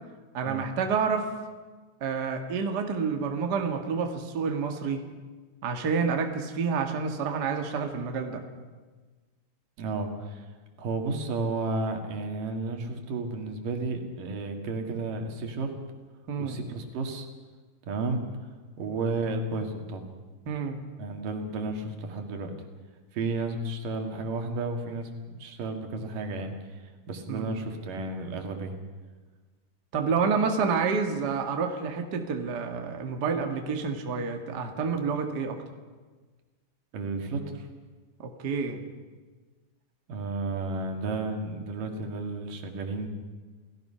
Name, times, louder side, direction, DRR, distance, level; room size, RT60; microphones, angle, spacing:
voice 1, 0.3-1.3 2.0-5.0 5.6-8.4 16.3-16.6 20.5-20.8 27.3-27.5 29.9-35.6 38.2-38.8, right 5 dB, 40° right, 4 dB, 1.9 m, -29 dB
voice 2, 9.8-10.5 10.8-15.7 16.4-17.3 17.8-18.2 18.8-20.1 21.0-22.5 23.1-26.8 27.1-28.7 36.9-37.7 40.1-43.1, right 3 dB, 90° right, 4 dB, 3.7 m, -32 dB
28.5 x 17.5 x 5.7 m, 1.3 s
omnidirectional pair, 3.7 m